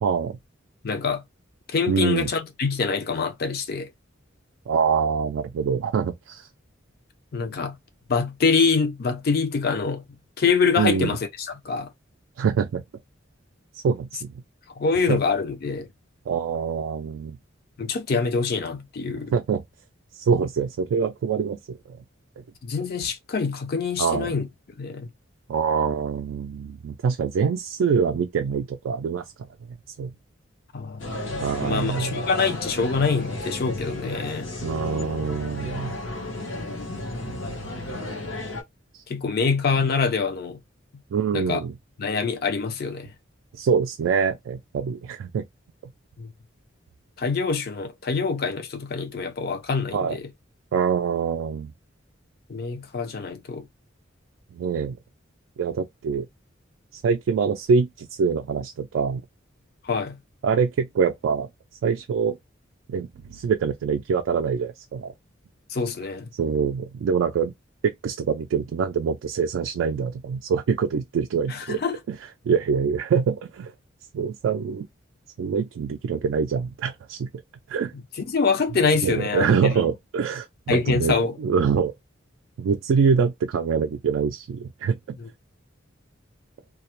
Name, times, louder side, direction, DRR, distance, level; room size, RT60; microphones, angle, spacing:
voice 1, 0.0-0.4 1.9-2.3 4.7-6.5 10.8-11.2 12.4-12.8 13.7-14.3 15.1-15.2 16.3-17.4 19.3-19.6 20.1-22.0 24.0-24.3 25.5-29.5 30.0-30.1 31.4-32.2 34.6-35.9 38.9-39.0 41.1-41.8 43.5-45.4 49.9-50.2 50.7-51.7 54.5-55.0 55.6-56.3 56.9-59.2 60.4-61.5 61.8-62.4 62.9-65.1 66.4-67.5 67.8-71.8 72.1-72.2 72.4-73.7 74.1-74.9 75.4-77.3 77.7-77.9 79.0-81.9 82.6-85.2, right 6 dB, 80° right, 0.3 m, -25 dB
voice 2, 0.8-1.2 1.7-3.9 7.3-7.8 8.1-10.0 10.4-11.9 14.8-15.9 17.8-19.3 22.6-24.5 24.8-25.1 30.7-34.5 39.1-40.6 41.3-41.6 42.0-43.1 46.2-46.3 47.2-50.3 52.5-53.7 59.8-60.2 65.7-66.3 71.5-71.9 78.3-79.8 80.7-81.4 85.2-85.3, left 5 dB, 50° left, 0.5 m, -25 dB
sound 1, 31.0-38.6, left 1 dB, 80° left, 0.8 m, -33 dB
2.2 x 2.0 x 2.9 m
head